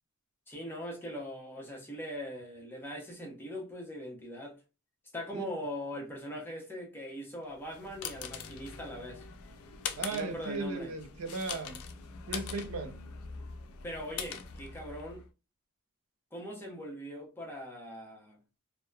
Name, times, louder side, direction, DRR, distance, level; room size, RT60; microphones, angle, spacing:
voice 1, 0.5-4.6 5.1-9.2 10.1-10.9 13.8-15.3 16.3-18.4, equal, 10° left, 0.7 m, -41 dB
sound 1, 7.5-15.3, left 6 dB, 70° left, 0.4 m, -43 dB
voice 2, 10.0-11.8 12.3-13.0, right 3 dB, 80° right, 0.6 m, -36 dB
2.8 x 2.1 x 2.2 m
head